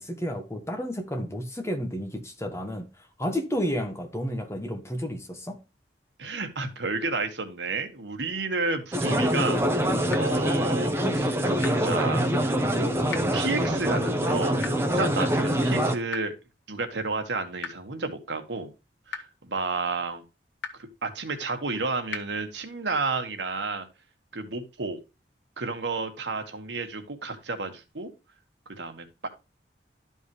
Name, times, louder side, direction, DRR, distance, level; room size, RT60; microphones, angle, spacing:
voice 1, 0.0-5.6, equal, 15° left, 1.3 m, -31 dB
voice 2, 6.2-9.6 10.2-12.3 13.3-14.6 14.9-16.3 16.7-18.7 19.1-20.2 20.7-23.9 24.3-25.0 25.6-28.1 28.7-29.3, right 3 dB, 80° right, 1.6 m, -31 dB
sound 1, 8.9-15.9, equal, 15° right, 1.0 m, -24 dB
sound 2, 10.1-10.2 11.6-11.7 13.1-13.2 14.6-14.7 16.1-16.2 17.6-17.7 19.1-19.2 20.6-20.7 22.1-22.2, left 5 dB, 85° left, 1.3 m, -33 dB
12.0 x 5.4 x 3.1 m
head